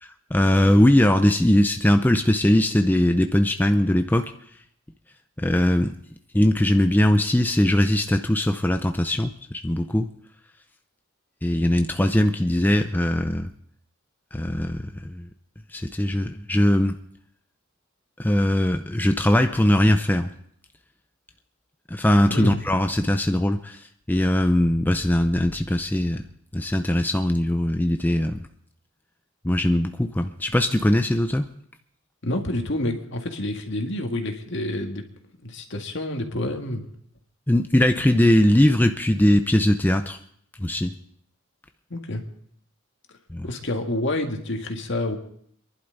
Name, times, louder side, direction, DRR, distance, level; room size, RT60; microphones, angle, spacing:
voice 1, 0.0-4.3 5.4-5.9 6.3-10.1 11.4-13.5 14.3-15.3 15.7-17.0 18.2-20.3 21.9-26.2 26.5-28.4 29.4-31.5 37.5-40.2 40.6-40.9 43.3-43.5, left 1 dB, 10° left, 6 dB, 0.5 m, -20 dB
voice 2, 22.3-22.6 32.2-35.0 35.4-36.9 41.9-42.2 43.4-45.2, left 1 dB, 60° left, 4 dB, 1.9 m, -28 dB
26.5 x 11.5 x 3.9 m, 0.66 s
head